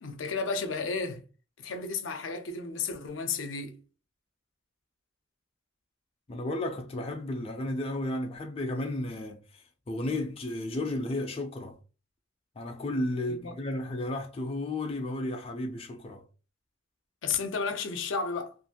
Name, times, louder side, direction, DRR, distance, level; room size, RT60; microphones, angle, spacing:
voice 1, 0.0-1.2 1.6-3.8 13.3-13.5 17.2-18.5, left 5 dB, 80° left, 0.5 m, -33 dB
voice 2, 6.3-11.8 12.6-16.2, left 1 dB, 30° left, 0.4 m, -33 dB
2.5 x 2.4 x 2.7 m
head